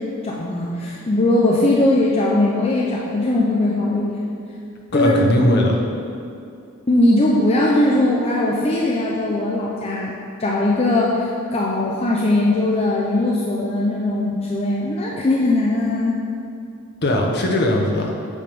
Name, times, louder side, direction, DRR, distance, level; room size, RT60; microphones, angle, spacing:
voice 1, 0.0-4.2 4.9-5.2 6.9-10.1 10.4-16.2, left 2 dB, 30° left, -4 dB, 0.5 m, -19 dB
voice 2, 4.9-5.8 17.0-18.1, left 1 dB, 50° left, 0 dB, 0.8 m, -19 dB
8.4 x 3.5 x 5.3 m, 2.5 s
head